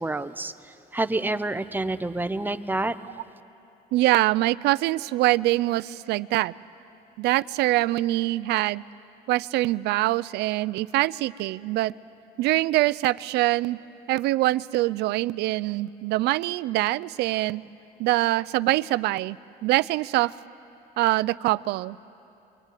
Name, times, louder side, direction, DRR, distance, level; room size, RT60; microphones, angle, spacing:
voice 1, 0.0-3.0, right 2 dB, 10° right, 10 dB, 0.9 m, -28 dB
voice 2, 3.9-6.5 7.2-8.8 9.3-11.9 12.4-13.8 14.1-17.6 18.0-19.4 19.6-20.3 21.0-22.0, right 17 dB, 85° right, 17 dB, 0.5 m, -24 dB
27.0 x 24.0 x 9.3 m, 2.8 s
cardioid pair, 110°, 17 cm